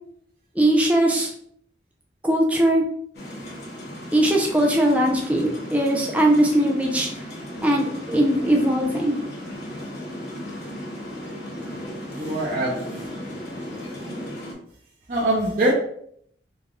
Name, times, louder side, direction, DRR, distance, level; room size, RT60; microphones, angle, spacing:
voice 1, 0.6-1.3 2.2-2.8 4.1-7.2 7.6-9.2, right 1 dB, 10° right, 0 dB, 0.4 m, -20 dB
sound 1, 3.1-14.5, left 1 dB, 60° left, 1.0 m, -36 dB
voice 2, 12.1-13.4 13.7-13.8 15.1-15.7, right 1 dB, 50° right, -4 dB, 0.7 m, -25 dB
3.9 x 2.3 x 3.6 m, 0.66 s
head